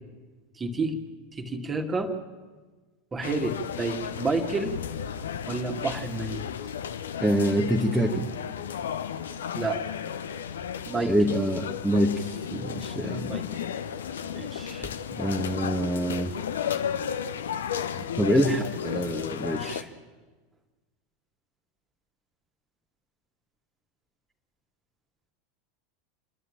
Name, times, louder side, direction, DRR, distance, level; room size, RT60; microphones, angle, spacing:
voice 1, 0.6-1.0 1.3-2.1 3.1-4.8 5.5-6.5 9.5-9.8 10.9-11.1 13.3-13.4 14.4-14.9, right 3 dB, 20° right, 5 dB, 2.1 m, -30 dB
sound 1, 3.2-19.8, left 8 dB, 70° left, 0.9 m, -34 dB
voice 2, 7.2-8.3 11.0-13.3 15.2-16.3 18.2-19.9, equal, 5° right, -1 dB, 1.5 m, -25 dB
28.5 x 11.0 x 8.7 m, 1.3 s
figure-of-eight pair, 85°, 0 cm